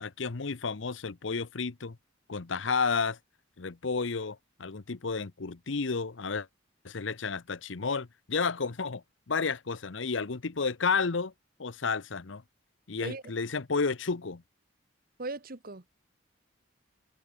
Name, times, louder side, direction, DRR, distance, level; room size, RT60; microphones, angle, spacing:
voice 1, 0.0-2.0 2.3-3.2 3.6-6.5 6.8-9.0 9.3-11.3 11.6-12.4 12.9-14.4, left 4 dB, 75° left, 0.9 m, -31 dB
voice 2, 15.2-15.9, right 3 dB, 50° right, 1.4 m, -38 dB
head